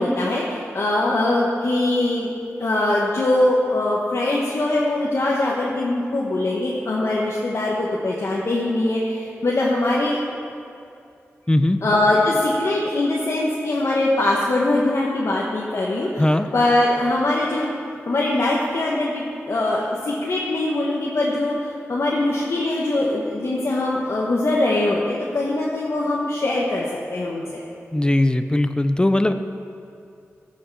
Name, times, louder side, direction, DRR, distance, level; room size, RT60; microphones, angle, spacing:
voice 1, 0.0-2.3 2.6-10.2 11.8-17.7 18.1-27.6, left 2 dB, 65° left, -4 dB, 1.2 m, -22 dB
voice 2, 11.5-11.8 16.2-16.5 27.9-29.3, left 1 dB, 15° left, 10 dB, 0.5 m, -19 dB
14.5 x 6.4 x 4.7 m, 2.6 s
wide cardioid pair, 65°, 5 cm